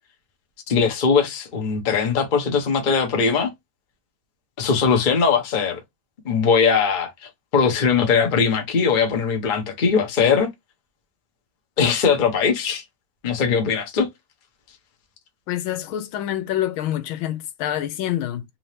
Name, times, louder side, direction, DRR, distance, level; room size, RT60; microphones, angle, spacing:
voice 1, 0.7-3.5 4.6-5.8 6.2-7.1 7.5-10.5 11.8-12.8 13.2-14.1, left 5 dB, 40° left, 0.7 m, -20 dB
voice 2, 15.5-18.4, left 12 dB, 80° left, 1.5 m, -26 dB
3.7 x 2.8 x 3.2 m
omnidirectional pair, 2.2 m